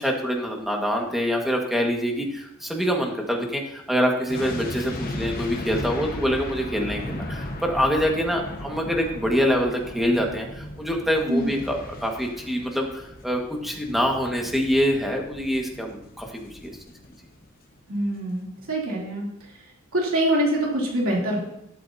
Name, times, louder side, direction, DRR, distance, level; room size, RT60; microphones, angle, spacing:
voice 1, 0.0-16.7, equal, ahead, 0 dB, 1.7 m, -25 dB
sound 1, 4.3-17.4 17.7-17.9, left 1 dB, 45° left, 1.3 m, -37 dB
voice 2, 17.9-19.3 19.9-21.4, right 1 dB, 70° right, -3 dB, 3.1 m, -24 dB
12.5 x 12.0 x 2.8 m, 0.80 s
head